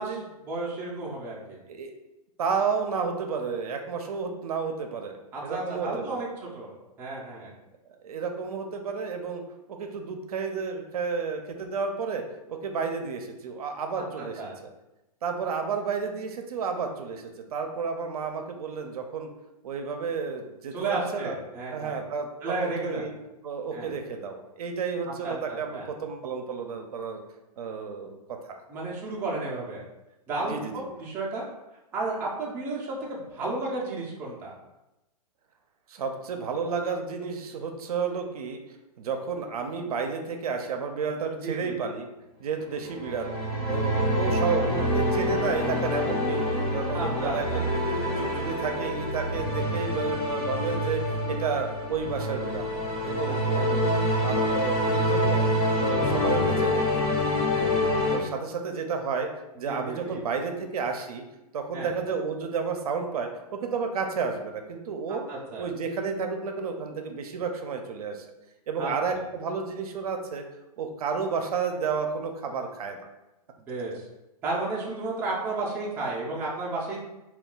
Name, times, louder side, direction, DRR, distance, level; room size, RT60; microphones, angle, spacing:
voice 1, 0.4-1.6 5.3-6.3 6.5-7.5 14.4-14.5 20.7-22.0 22.4-23.1 23.7-23.9 25.2-25.9 28.7-29.8 30.3-31.5 31.9-34.5 41.4-41.8 46.9-47.6 53.5-53.6 59.6-60.2 61.7-61.9 65.3-65.6 68.8-68.9 73.6-74.0 74.4-77.0, right 2 dB, 10° right, -4 dB, 0.4 m, -32 dB
voice 2, 2.4-6.3 8.0-9.4 9.7-12.2 12.5-14.4 15.2-19.3 19.6-21.4 21.7-22.3 22.6-23.1 23.4-27.2 27.6-28.2 28.5-28.6 30.4-30.9 35.9-38.6 39.0-42.1 42.4-43.3 43.7-47.8 48.1-51.0 51.3-52.7 53.0-55.5 55.8-57.7 58.1-59.3 59.6-61.2 61.5-65.3 65.6-68.3 68.7-70.4 70.8-73.0, right 5 dB, 70° right, 5 dB, 0.5 m, -31 dB
sound 1, 42.7-58.2, left 1 dB, 70° left, 1.2 m, -26 dB
2.3 x 2.2 x 3.7 m, 0.96 s
hypercardioid pair, 145°, 20 cm